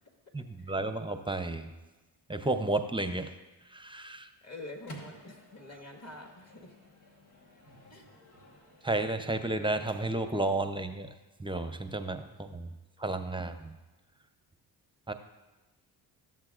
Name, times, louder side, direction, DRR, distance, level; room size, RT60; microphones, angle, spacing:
voice 1, 0.3-1.7 2.3-3.3 3.7-4.3 8.8-11.1 11.4-12.7 13.0-13.7 15.1-15.2, right 2 dB, 10° right, 8 dB, 0.6 m, -32 dB
Microwave oven, 4.4-10.4, equal, 85° left, 1.5 m, -53 dB
voice 2, 4.4-6.7 7.9-8.1 12.6-12.8, left 2 dB, 35° left, 2 dB, 1.8 m, -47 dB
13.0 x 7.4 x 2.5 m, 1.1 s
supercardioid pair, 45°, 46 cm